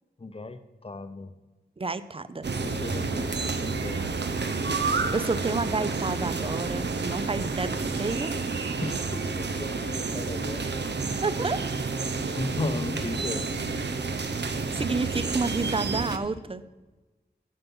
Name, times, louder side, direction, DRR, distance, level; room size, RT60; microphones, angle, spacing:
voice 1, 0.2-1.3 2.5-4.1 8.8-10.8 12.4-13.5, left 3 dB, 35° left, 11 dB, 0.7 m, -36 dB
voice 2, 1.8-2.5 4.9-8.3 11.2-11.6 14.7-16.6, right 3 dB, 30° right, 14 dB, 0.5 m, -30 dB
sound 1, 2.4-16.2, right 4 dB, 75° right, 0.7 m, -30 dB
9.5 x 7.0 x 5.5 m, 1.2 s
wide cardioid pair, 85°, 18 cm